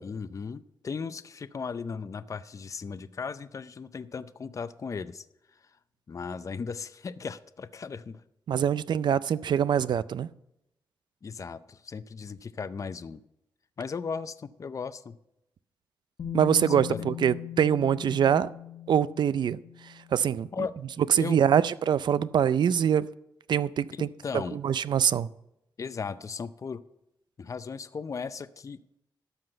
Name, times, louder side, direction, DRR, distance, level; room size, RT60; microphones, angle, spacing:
voice 1, 0.0-5.8 6.1-8.2 11.2-13.2 13.8-15.2 16.7-17.1 20.5-20.7 21.1-21.4 23.9-24.6 25.8-26.8 27.4-29.0, left 5 dB, 45° left, 0.5 m, -37 dB
voice 2, 8.5-10.3 16.3-18.5 18.9-19.6 20.1-20.5 21.2-23.1 23.5-24.1 24.3-25.3, right 8 dB, 70° right, 0.4 m, -24 dB
Bass guitar, 16.2-22.2, left 11 dB, 70° left, 1.5 m, -41 dB
12.5 x 5.8 x 7.8 m
cardioid pair, 75°, 8 cm